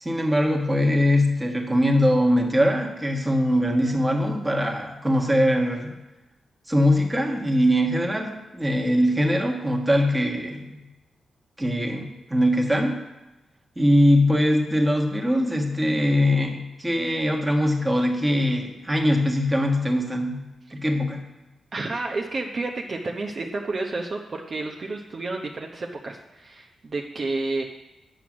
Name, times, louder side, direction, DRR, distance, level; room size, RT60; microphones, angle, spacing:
voice 1, 0.0-6.0 6.7-10.8 11.6-13.0 13.8-20.5 20.7-21.2, equal, 15° right, 2 dB, 1.5 m, -22 dB
voice 2, 21.7-27.6, right 3 dB, 45° right, 1 dB, 0.8 m, -30 dB
9.1 x 6.1 x 6.2 m, 1.0 s
cardioid pair, 90°, 0 cm